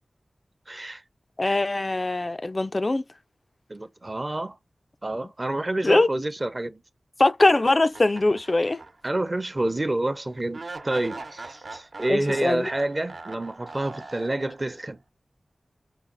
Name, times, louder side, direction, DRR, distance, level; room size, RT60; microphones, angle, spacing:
voice 1, 0.7-1.0 3.7-4.6 5.0-6.8 9.0-15.0, right 1 dB, 30° right, 0.8 m, -28 dB
voice 2, 1.4-3.0 5.8-6.1 7.2-8.8 12.1-12.7, left 2 dB, 35° left, 0.4 m, -22 dB
sound 1, 7.9-9.2 9.6-9.7 10.5-14.8, right 3 dB, 60° right, 1.0 m, -41 dB
5.6 x 2.4 x 3.9 m
wide cardioid pair, 75°, 0 cm